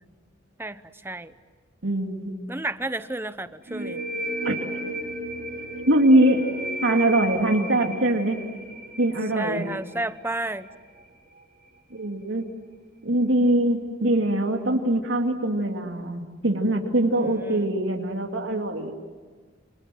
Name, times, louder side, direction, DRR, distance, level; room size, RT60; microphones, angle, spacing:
voice 1, 0.6-1.3 2.5-4.0 9.4-10.7 17.1-17.7, right 2 dB, 10° right, 12 dB, 0.8 m, -32 dB
voice 2, 1.8-2.3 4.4-4.5 5.9-6.5 6.8-8.4 9.0-9.6 11.9-12.5 13.0-18.9, right 1 dB, 85° right, 3 dB, 2.6 m, -22 dB
sound 1, 3.7-11.1, right 1 dB, 50° right, 4.0 m, -34 dB
28.0 x 27.5 x 7.7 m, 1.4 s
head